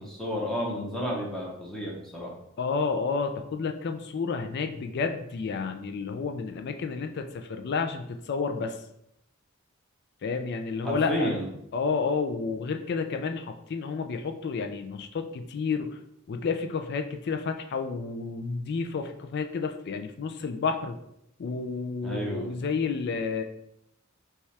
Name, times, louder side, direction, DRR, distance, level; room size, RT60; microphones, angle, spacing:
voice 1, 0.0-2.3 10.8-11.4 22.0-22.5, equal, ahead, -4 dB, 0.8 m, -31 dB
voice 2, 2.6-8.8 10.2-11.3 11.7-16.0 16.3-21.0 21.4-23.4, left 4 dB, 50° left, 6 dB, 0.4 m, -30 dB
5.4 x 2.4 x 3.2 m, 0.77 s
head